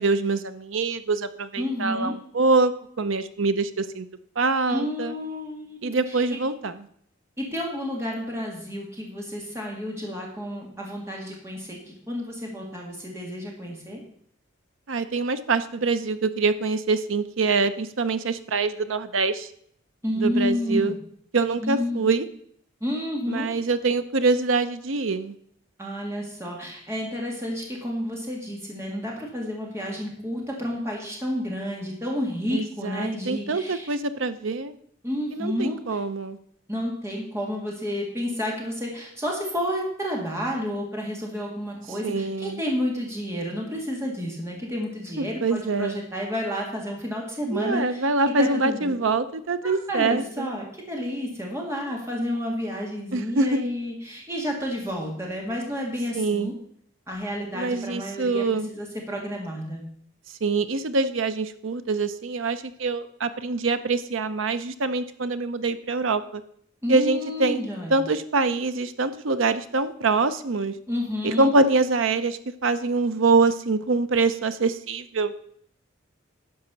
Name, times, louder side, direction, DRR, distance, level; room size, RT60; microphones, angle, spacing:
voice 1, 0.0-2.7 3.0-4.1 4.4-5.1 5.8-6.9 14.9-19.5 20.2-20.9 21.3-22.3 23.3-25.3 32.5-34.7 35.3-36.4 42.0-42.6 45.2-46.0 47.5-50.5 53.1-53.7 56.1-56.5 57.5-58.7 60.4-66.4 66.9-67.6 67.9-70.7 71.2-75.3, right 3 dB, 75° right, 11 dB, 0.7 m, -24 dB
voice 2, 1.6-2.1 4.7-6.4 7.4-14.0 20.0-20.9 21.6-22.0 22.8-23.5 25.8-33.9 35.0-35.8 36.7-48.9 49.6-56.5 57.1-59.8 66.8-68.0 70.9-71.5, equal, 15° right, -1 dB, 2.1 m, -30 dB
11.0 x 5.0 x 6.8 m, 0.66 s
head